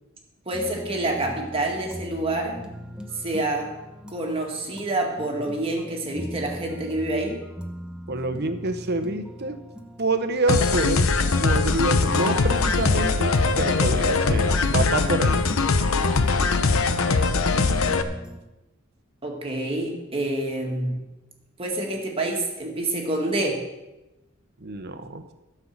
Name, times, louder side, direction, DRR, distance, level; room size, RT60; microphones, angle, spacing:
sound 1, 0.5-18.4, equal, 5° right, 0.9 m, -39 dB
voice 1, 0.5-2.6 3.2-3.7 4.1-7.4 19.2-21.0 21.6-23.7, right 2 dB, 25° right, 0 dB, 2.0 m, -27 dB
voice 2, 8.1-9.6 10.0-11.1 11.4-15.4 24.6-25.2, right 2 dB, 50° right, 9 dB, 1.0 m, -27 dB
sound 2, 10.5-18.0, left 4 dB, 85° left, 0.8 m, -21 dB
13.5 x 5.6 x 7.4 m, 1.0 s
head